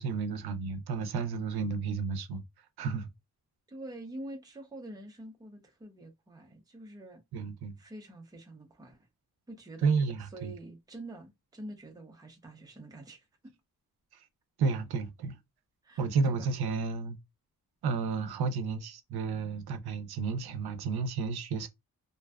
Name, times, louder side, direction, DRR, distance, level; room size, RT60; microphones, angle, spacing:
voice 1, 0.0-2.4 2.8-3.1 7.3-7.8 9.8-10.5 14.1-14.3 14.6-15.4 16.0-17.2 17.8-21.7, right 4 dB, 85° right, 0.5 m, -31 dB
voice 2, 3.7-7.2 7.8-9.1 9.5-9.9 10.3-13.5 15.8-16.5 18.2-18.5, right 1 dB, 10° right, 0.5 m, -46 dB
2.6 x 2.1 x 2.3 m
wide cardioid pair, 160°, 37 cm